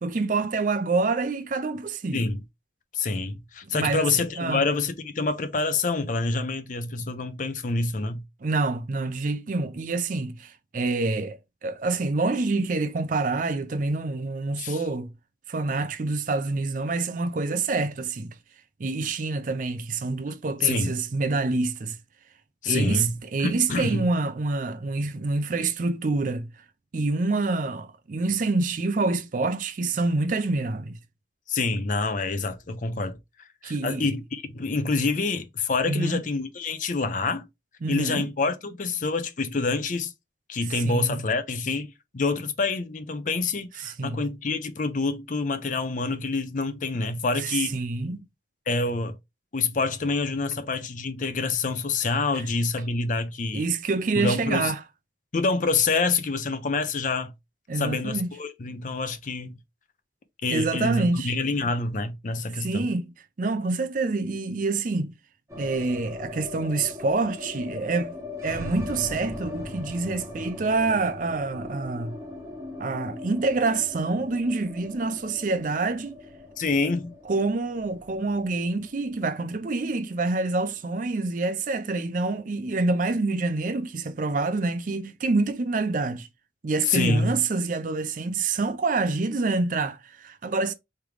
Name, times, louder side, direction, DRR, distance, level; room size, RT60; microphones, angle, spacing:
voice 1, 0.0-2.3 3.6-4.1 4.4-4.6 8.4-15.1 15.5-18.3 18.8-22.0 22.7-26.5 26.9-31.0 33.6-34.1 35.9-36.2 37.8-38.3 40.7-41.2 43.8-44.2 47.4-48.2 53.5-54.8 57.7-58.3 60.5-61.3 62.5-65.1 65.6-68.2 68.4-72.2 72.8-76.2 77.3-86.3 86.6-90.7, right 3 dB, 45° right, 0.5 m, -27 dB
voice 2, 2.9-8.2 14.6-14.8 20.6-20.9 22.6-23.1 23.4-24.1 31.5-33.2 33.6-37.5 37.9-40.1 40.5-47.7 48.7-49.1 49.5-53.7 54.1-54.7 55.3-57.3 57.7-59.6 60.4-62.8 76.6-77.2 86.9-87.4, left 3 dB, 45° left, 0.5 m, -27 dB
sound 1, 65.5-81.6 81.9-82.0 82.2-82.9, left 2 dB, 15° right, 1.2 m, -40 dB
3.6 x 3.3 x 3.2 m
head